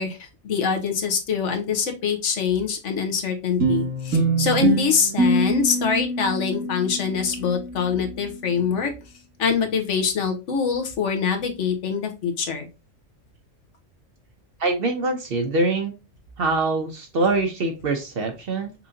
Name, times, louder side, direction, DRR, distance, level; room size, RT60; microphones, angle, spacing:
voice 1, 0.0-8.9 9.4-12.7, left 6 dB, 70° left, 5 dB, 1.1 m, -24 dB
sound 1, 3.6-8.2, right 2 dB, 85° right, 2.2 m, -25 dB
voice 2, 14.6-15.9 16.4-18.7, right 3 dB, 55° right, 5 dB, 0.7 m, -24 dB
5.6 x 2.6 x 2.6 m, 0.27 s
omnidirectional pair, 1.3 m